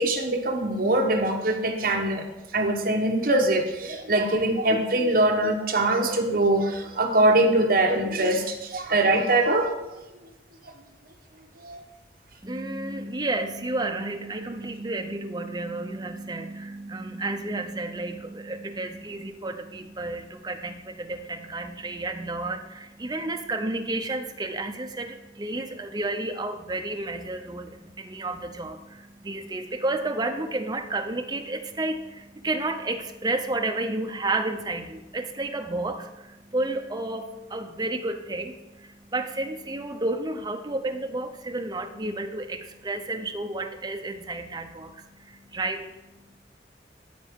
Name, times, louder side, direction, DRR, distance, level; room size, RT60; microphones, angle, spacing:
voice 1, 0.0-2.2 2.5-9.7 11.6-11.8, right 1 dB, 55° right, 3 dB, 1.0 m, -23 dB
voice 2, 12.4-46.4, right 2 dB, 25° right, 5 dB, 0.6 m, -31 dB
13.5 x 4.6 x 3.6 m, 1.0 s
head